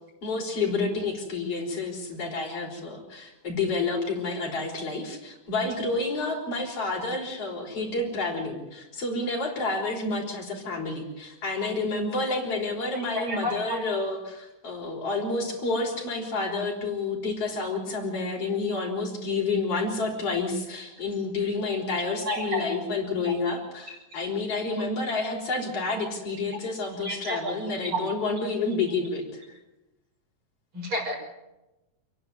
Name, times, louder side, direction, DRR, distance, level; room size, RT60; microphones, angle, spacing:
voice 1, 0.2-29.4, left 3 dB, 50° left, 0 dB, 5.9 m, -29 dB
voice 2, 13.1-13.8 22.2-22.8 27.0-27.5 30.7-31.2, left 1 dB, 40° right, 0 dB, 6.8 m, -30 dB
29.0 x 11.0 x 9.7 m, 1.0 s
omnidirectional pair, 3.4 m